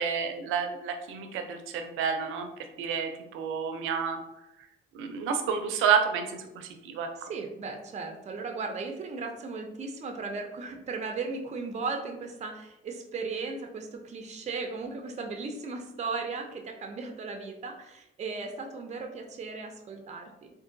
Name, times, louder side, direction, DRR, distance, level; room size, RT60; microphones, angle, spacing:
voice 1, 0.0-2.5 2.8-4.2 4.9-7.1, right 6 dB, 85° right, 6 dB, 0.5 m, -29 dB
voice 2, 7.2-20.5, right 4 dB, 35° right, 3 dB, 0.5 m, -36 dB
3.6 x 2.6 x 2.5 m, 0.90 s
cardioid pair, 90°, 20 cm